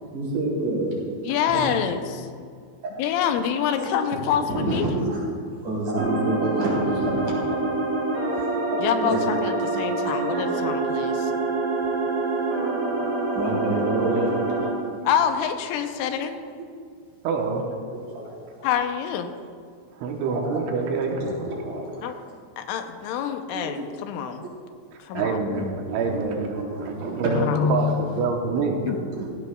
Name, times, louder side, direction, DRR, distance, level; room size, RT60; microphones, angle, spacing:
voice 1, 0.1-1.1 1.4-1.9 3.2-3.3 3.8-4.2 4.5-5.2 5.6-7.2 7.5-7.7 8.3-8.5 9.0-9.2 11.2-11.4 12.9-14.7 16.1-16.2 17.9-18.7 20.3-21.0 21.4-22.0 23.5-23.8 25.8-26.1 26.5-27.7 28.8-29.3, right 1 dB, 45° right, -5 dB, 4.5 m, -28 dB
voice 2, 1.2-2.3 3.0-4.9 8.8-11.3 15.1-16.3 18.6-19.3 22.0-22.1 22.6-24.4 25.0-25.4 27.3-27.7 28.9-29.0, left 8 dB, 85° left, 7 dB, 3.2 m, -26 dB
sound 1, 6.0-14.7, right 2 dB, 25° right, 3.2 m, -26 dB
voice 3, 12.6-13.2 17.2-17.6 20.0-21.5 25.1-28.9 29.2-29.3, right 4 dB, 80° right, 2 dB, 3.3 m, -27 dB
16.0 x 16.0 x 2.3 m, 2.1 s
omnidirectional pair, 5.6 m